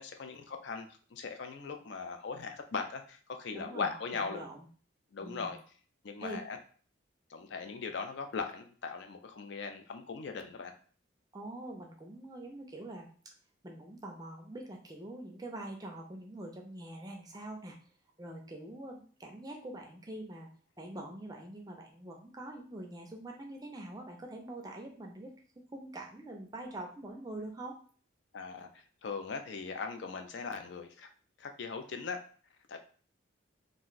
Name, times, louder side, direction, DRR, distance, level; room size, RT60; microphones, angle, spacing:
voice 1, 0.0-4.5 5.1-5.6 6.0-6.6 7.3-10.7 28.3-31.1 31.4-32.2 32.7-32.8, left 5 dB, 60° left, 6 dB, 0.4 m, -39 dB
voice 2, 3.5-4.7 5.2-5.5 6.2-6.4 11.3-13.1 13.6-17.8 18.2-20.5 20.8-25.3 25.7-27.8, right 1 dB, 20° right, 2 dB, 0.4 m, -44 dB
2.5 x 2.2 x 3.8 m, 0.43 s
head